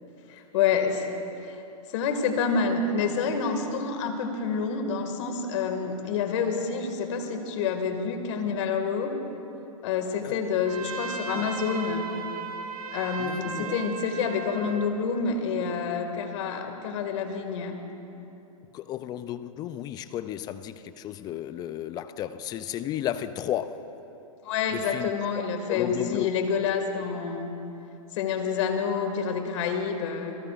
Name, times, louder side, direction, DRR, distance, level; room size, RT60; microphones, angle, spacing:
voice 1, 0.3-1.1 1.4-1.6 1.9-9.1 9.8-12.1 12.9-17.8 24.4-27.5 28.1-30.4, left 5 dB, 55° left, 5 dB, 2.1 m, -28 dB
Trumpet, 10.6-14.9, right 5 dB, 80° right, 1.8 m, -36 dB
voice 2, 13.2-13.7 18.7-23.9 24.7-26.3, left 11 dB, 20° left, 13 dB, 0.4 m, -33 dB
27.5 x 19.0 x 2.5 m, 2.9 s
hypercardioid pair, 130°, 19 cm